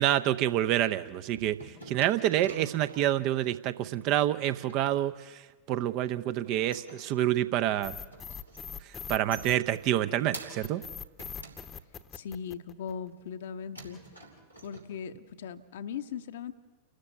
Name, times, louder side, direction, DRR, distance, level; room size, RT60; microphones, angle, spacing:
voice 1, 0.0-1.6 1.9-5.4 5.7-8.0 9.1-10.8, right 12 dB, 40° right, 12 dB, 0.7 m, -27 dB
sound 1, 0.9-3.2 4.2-4.8 6.2-7.5 7.9-8.8 9.0-10.8 11.2-12.3 12.8-13.4 13.7-14.8, right 1 dB, 90° right, 2.9 m, -48 dB
sound 2, 7.8-10.1 10.6-13.1, left 7 dB, 20° left, 0.9 m, -42 dB
voice 2, 12.1-14.0 14.6-16.5, left 7 dB, 60° left, 9 dB, 0.9 m, -39 dB
29.0 x 13.0 x 8.3 m, 1.3 s
figure-of-eight pair, 90°, 0 cm